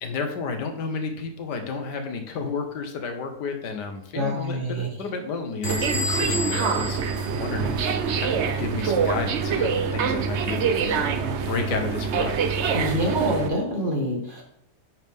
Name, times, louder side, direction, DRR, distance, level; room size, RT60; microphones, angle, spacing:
voice 1, 0.0-7.0 7.4-11.1 11.4-12.3, left 4 dB, 85° left, 6 dB, 1.7 m, -32 dB
voice 2, 4.1-4.9 12.7-14.4, equal, 30° right, -1 dB, 1.7 m, -26 dB
Bell / Door, 5.6-8.1, left 2 dB, 35° left, 2.7 m, -32 dB
sound 1, 5.6-13.5, right 6 dB, 55° right, 0.8 m, -25 dB
8.9 x 6.0 x 3.6 m, 0.73 s
omnidirectional pair, 1.8 m